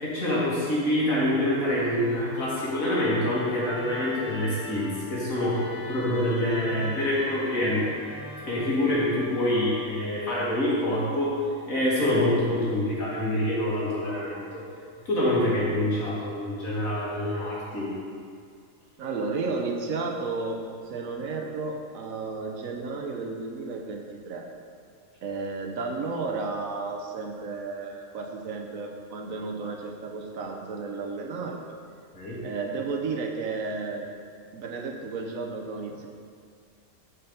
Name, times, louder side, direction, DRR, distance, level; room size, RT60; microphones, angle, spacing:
voice 1, 0.0-5.6 5.9-7.8 8.5-11.3 11.7-14.6 15.1-17.9 32.1-32.4, left 1 dB, 75° left, -7 dB, 2.5 m, -26 dB
Musical instrument, 1.1-10.4, left 1 dB, 60° left, 1.6 m, -41 dB
voice 2, 19.0-24.5 25.2-31.6 32.4-34.1 34.5-36.1, right 4 dB, 75° right, 2 dB, 1.2 m, -33 dB
8.0 x 5.5 x 5.2 m, 2.2 s
omnidirectional pair, 1.5 m